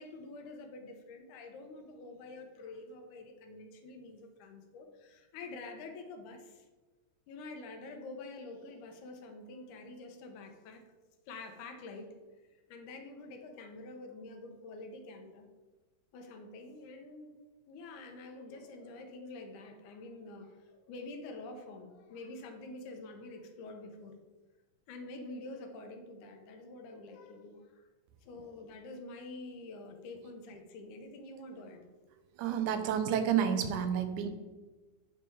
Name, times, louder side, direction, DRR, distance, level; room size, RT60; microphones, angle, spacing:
voice 1, 0.0-6.7 7.3-10.8 11.3-12.2 12.7-15.5 16.1-17.3 17.7-24.2 24.9-27.9 28.2-31.8, left 2 dB, 85° left, 5 dB, 2.3 m, -47 dB
voice 2, 32.4-34.3, right 8 dB, 85° right, 7 dB, 2.1 m, -30 dB
8.3 x 3.5 x 4.4 m, 1.2 s
omnidirectional pair, 3.4 m